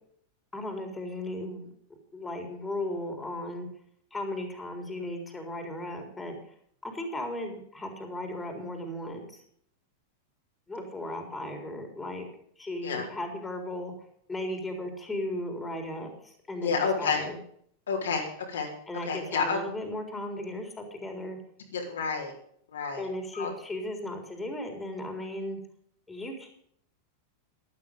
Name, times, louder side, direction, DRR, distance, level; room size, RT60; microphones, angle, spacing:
voice 1, 0.5-1.7 2.1-3.7 4.1-6.4 6.8-9.4 10.7-12.3 12.6-13.9 14.3-17.4 18.9-21.4 23.0-25.6 26.1-26.5, left 1 dB, 10° left, 4 dB, 4.1 m, -36 dB
voice 2, 16.6-17.2 17.9-18.7 19.1-19.6 21.7-22.3 22.7-23.0 23.3-23.5, left 5 dB, 65° left, 0 dB, 4.3 m, -29 dB
13.5 x 13.0 x 5.4 m, 0.65 s
figure-of-eight pair, 90°, 0 cm